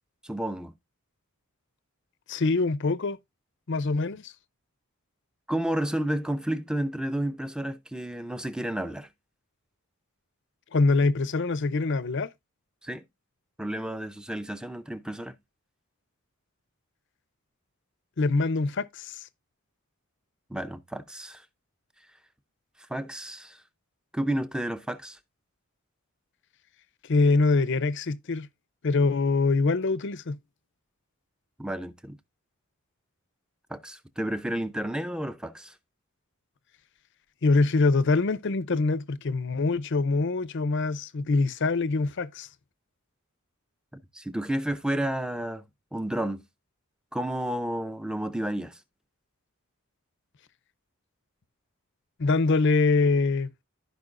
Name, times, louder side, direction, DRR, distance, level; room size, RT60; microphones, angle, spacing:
voice 1, 0.2-0.7 5.5-9.1 12.8-13.1 13.6-15.4 20.5-21.4 22.9-23.6 24.1-25.2 31.6-32.2 33.7-35.7 43.9-45.7 45.9-46.4 47.1-48.8, right 1 dB, 5° right, 0.5 m, -31 dB
voice 2, 2.3-3.2 3.7-4.3 10.7-12.3 18.2-19.3 27.1-28.5 28.8-30.4 37.4-42.5 52.2-53.5, left 3 dB, 55° left, 0.6 m, -24 dB
14.5 x 5.2 x 2.5 m
head